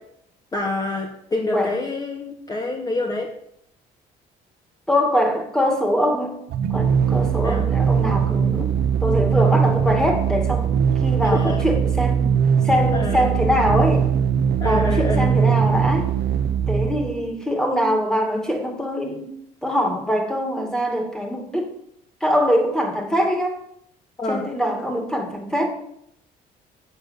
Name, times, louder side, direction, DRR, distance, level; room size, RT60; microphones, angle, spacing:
voice 1, 0.5-3.3 7.4-7.6 11.3-11.6 12.9-13.3 14.6-15.3 24.2-24.4, left 2 dB, 20° left, 1 dB, 1.4 m, -26 dB
voice 2, 4.9-6.4 6.7-12.3 12.6-14.1 14.6-16.1 16.7-19.3 19.6-21.7 22.2-23.6 24.3-25.7, equal, 5° left, 3 dB, 2.2 m, -23 dB
sound 1, 6.5-17.2, right 7 dB, 70° right, 0.9 m, -20 dB
8.0 x 7.0 x 6.9 m, 0.73 s
cardioid pair, 110°, 17 cm